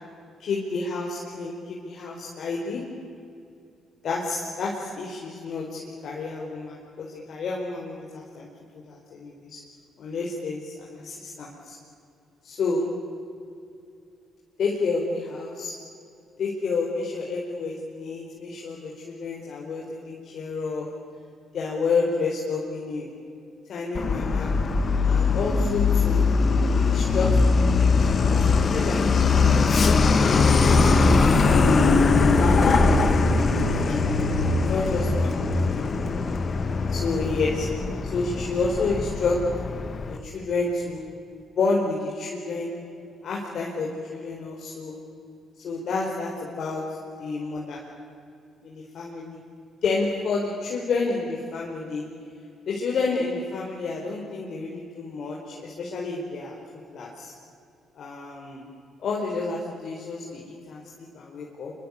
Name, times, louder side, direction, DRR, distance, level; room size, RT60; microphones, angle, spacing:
voice 1, 0.4-2.8 4.0-8.5 8.9-9.6 10.0-11.8 12.4-12.9 14.6-15.7 16.4-20.9 21.5-23.1 23.7-24.5 25.0-26.2 26.8-27.9 28.3-29.0 29.6-31.8 32.4-32.8 33.3-34.0 34.7-35.3 36.9-37.7 38.1-39.4 40.1-41.0 41.5-42.7 43.2-44.9 45.6-46.8 47.2-47.8 48.6-49.4 49.8-52.0 52.7-56.6 56.9-57.3 57.9-58.7 59.0-61.7, left 4 dB, 65° left, -2 dB, 4.5 m, -30 dB
Truck, 23.9-40.2, left 4 dB, 45° left, 2.3 m, -21 dB
25.5 x 25.0 x 8.5 m, 2.5 s
cardioid pair, 90°, 0 cm